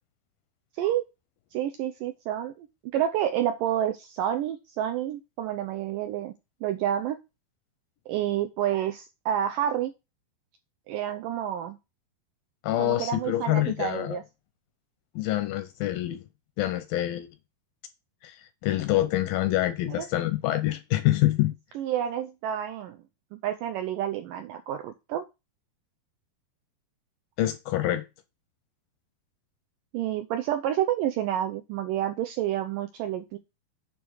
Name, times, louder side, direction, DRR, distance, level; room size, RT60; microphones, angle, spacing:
voice 1, 1.5-2.7 2.9-6.3 6.6-7.2 8.1-9.9 10.9-11.8 12.8-14.2 19.9-20.1 21.8-23.0 23.3-25.3 29.9-33.4, right 11 dB, 80° right, 1.9 m, -29 dB
voice 2, 12.6-14.2 15.2-16.2 16.6-17.3 18.2-18.4 18.6-21.5 27.4-28.0, left 15 dB, 80° left, 2.1 m, -26 dB
9.1 x 3.5 x 6.3 m
omnidirectional pair, 4.6 m